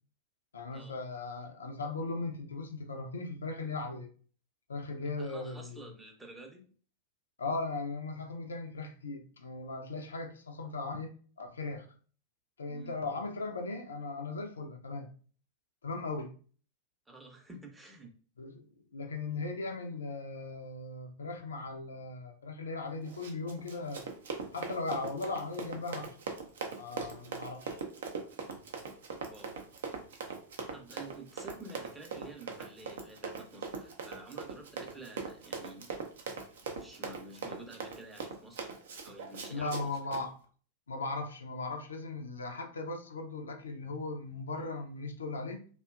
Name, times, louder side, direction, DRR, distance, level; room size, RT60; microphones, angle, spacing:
voice 1, 0.5-4.1 4.7-5.8 7.4-11.1 11.4-11.9 12.6-15.1 15.8-16.3 18.4-18.6 18.9-24.0 24.5-26.2 26.8-27.8 39.5-40.4 40.9-45.6, left 3 dB, 70° left, 0.3 m, -38 dB
voice 2, 5.2-6.7 12.7-12.9 17.1-18.1 29.3-29.6 30.7-35.9 36.7-38.7 39.0-39.7, right 2 dB, 10° right, 0.6 m, -50 dB
Run, 23.0-40.2, right 5 dB, 60° right, 0.4 m, -41 dB
2.7 x 2.1 x 2.2 m
figure-of-eight pair, 90°, 0 cm